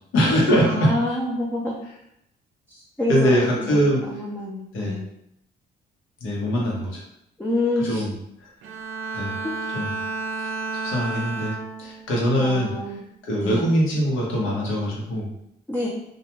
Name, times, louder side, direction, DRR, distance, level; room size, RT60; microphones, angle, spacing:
voice 1, 0.1-1.0 3.1-4.0 4.7-5.0 6.2-7.0 7.8-8.1 8.4-8.5 9.1-9.4 9.7-9.9 10.7-12.7 13.2-15.3, equal, 85° left, -3 dB, 1.0 m, -22 dB
voice 2, 0.6-1.7 2.7-5.1 7.4-8.0 9.4-9.6 12.4-13.0 13.4-13.6 15.7-15.9, left 2 dB, 10° left, -5 dB, 0.5 m, -27 dB
Bowed string instrument, 8.6-12.2 12.6-13.0, right 3 dB, 80° right, 0.5 m, -31 dB
2.3 x 2.2 x 3.0 m, 0.77 s
cardioid pair, 90°, 20 cm